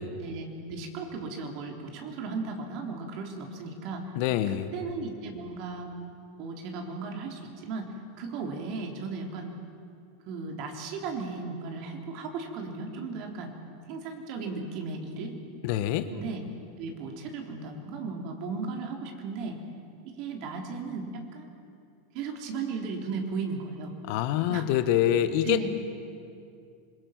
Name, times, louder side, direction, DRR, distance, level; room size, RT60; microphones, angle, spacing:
voice 1, 0.2-4.1 4.5-5.9 6.4-7.9 8.2-9.5 10.3-13.5 13.9-15.3 16.1-16.5 16.8-19.6 20.0-21.5 22.1-23.9 24.5-24.7 25.4-25.7, right 4 dB, 55° right, 2 dB, 3.6 m, -36 dB
voice 2, 4.1-4.7 15.6-16.1 24.1-25.7, left 11 dB, 60° left, 11 dB, 1.2 m, -25 dB
26.5 x 21.5 x 6.0 m, 2.4 s
hypercardioid pair, 100°, 0 cm